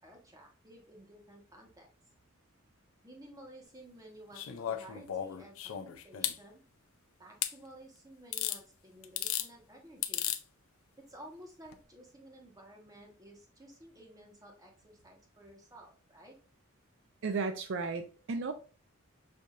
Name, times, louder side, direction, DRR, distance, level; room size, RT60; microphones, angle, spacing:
voice 1, 0.0-1.9 3.0-6.6 7.2-10.3 11.1-16.3, right 1 dB, 15° right, 1.1 m, -54 dB
sound 1, 4.3-6.4 7.4-7.5 8.3-8.6 9.0-9.5 10.0-10.4 11.7-11.8, left 11 dB, 80° left, 0.5 m, -35 dB
voice 2, 17.2-18.5, right 4 dB, 65° right, 0.4 m, -34 dB
6.3 x 2.7 x 2.4 m
head